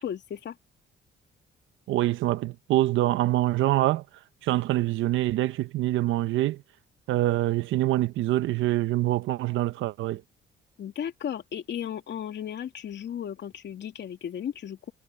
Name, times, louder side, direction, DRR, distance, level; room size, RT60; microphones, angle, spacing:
voice 1, 0.0-0.6 10.8-14.9, left 9 dB, 65° left, 3.0 m, -35 dB
voice 2, 1.9-4.0 4.4-6.6 7.1-10.2, right 15 dB, 85° right, 0.8 m, -25 dB
cardioid pair, 90°, 20 cm